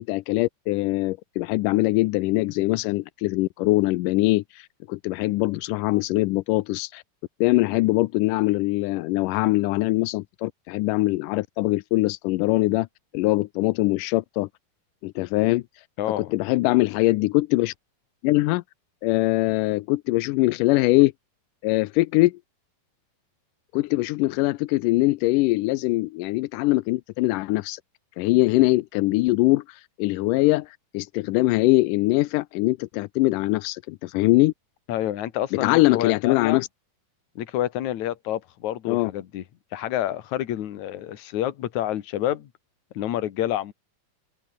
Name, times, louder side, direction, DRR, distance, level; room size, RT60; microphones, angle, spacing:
voice 1, 0.0-7.0 7.4-12.9 13.1-14.5 15.0-15.6 16.2-17.7 18.2-18.6 19.0-21.1 21.6-22.4 23.7-27.8 28.2-34.5 35.5-36.7 38.9-39.1, left 20 dB, 85° left, 1.9 m, -22 dB
voice 2, 16.0-16.3 34.9-36.6 37.4-39.4 39.7-42.5 42.9-43.7, left 12 dB, 60° left, 2.6 m, -28 dB
open air
omnidirectional pair, 4.4 m